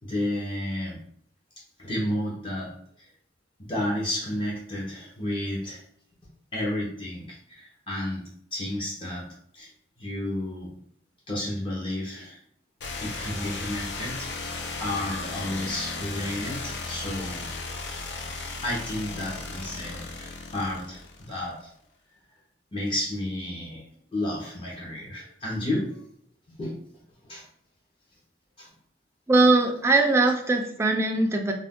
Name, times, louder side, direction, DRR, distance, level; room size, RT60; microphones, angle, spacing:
voice 1, 0.0-1.0 1.8-3.1 3.6-5.8 6.5-9.7 10.0-10.7 11.3-12.4 13.0-17.5 18.6-21.7 22.7-23.8 24.1-26.0 26.6-26.8 27.2-27.5 28.6-28.7, left 1 dB, 30° left, -4 dB, 0.7 m, -32 dB
sound 1, 12.8-21.5, left 3 dB, 70° left, 0.5 m, -35 dB
voice 2, 29.3-31.5, right 2 dB, 15° right, 2 dB, 0.4 m, -21 dB
2.4 x 2.2 x 3.5 m, 0.67 s
head